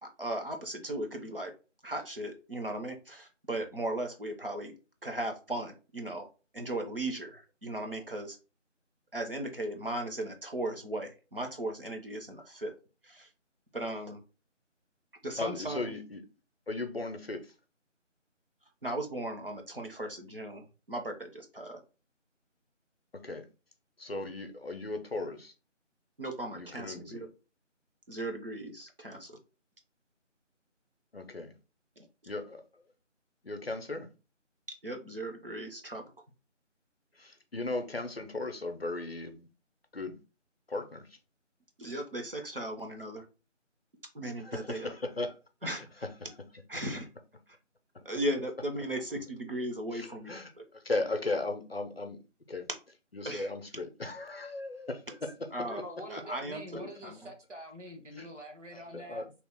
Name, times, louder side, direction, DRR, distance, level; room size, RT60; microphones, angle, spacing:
voice 1, 0.0-1.5 1.8-4.7 5.0-6.3 6.5-8.4 9.1-12.7 13.0-13.3 13.7-14.2 15.2-15.8 18.8-21.8 26.2-27.3 28.1-29.4 34.8-36.0 41.8-43.2 44.1-44.9 45.6-45.9 46.7-47.1 48.0-50.6 53.2-53.5 55.5-55.8 56.1-57.3, right 1 dB, 50° right, 0.6 m, -37 dB
voice 2, 15.4-16.2 16.7-17.5 23.1-23.5 24.0-25.5 26.5-27.2 31.1-31.5 32.3-32.9 33.4-34.1 37.2-39.5 39.9-40.2 40.7-41.2 44.4-45.4 45.6-46.1 49.9-52.2 52.5-52.7 53.1-55.7 58.2-58.3 58.7-59.3, left 2 dB, 55° left, 0.5 m, -37 dB
voice 3, 55.7-59.2, equal, 70° right, 1.1 m, -45 dB
2.9 x 2.2 x 3.3 m
figure-of-eight pair, 180°, 37 cm